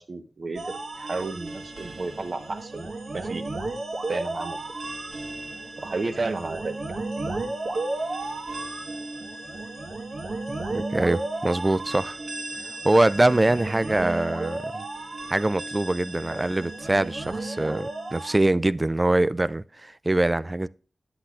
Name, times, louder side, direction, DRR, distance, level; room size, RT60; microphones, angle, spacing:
voice 1, 0.0-3.4 4.1-4.6 5.8-6.8, right 3 dB, 60° right, 1.0 m, -32 dB
sound 1, 0.6-18.4, right 2 dB, 80° right, 1.4 m, -33 dB
voice 2, 10.7-12.2 12.8-14.8 15.3-20.7, right 2 dB, 25° right, 0.3 m, -23 dB
10.0 x 7.8 x 2.4 m
cardioid pair, 60°, 0 cm